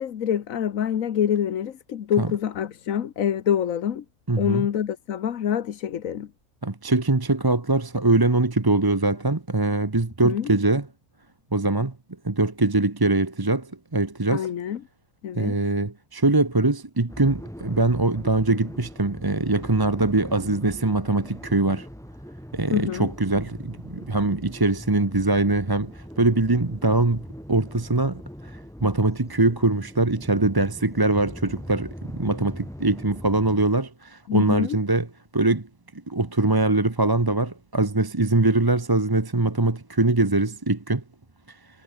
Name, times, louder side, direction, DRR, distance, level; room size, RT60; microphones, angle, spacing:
voice 1, 0.0-4.0 4.4-6.3 10.2-10.5 14.3-14.8 15.2-15.5 22.7-23.1 34.3-34.8, left 9 dB, 70° left, 1.4 m, -26 dB
voice 2, 4.3-4.7 6.6-10.9 11.5-11.9 12.2-14.5 15.3-21.9 22.5-35.1 35.3-35.7 36.1-41.0 41.5-41.6, right 2 dB, 15° right, 1.0 m, -23 dB
sound 1, 17.1-33.6, equal, ahead, 4.2 m, -41 dB
omnidirectional pair, 1.5 m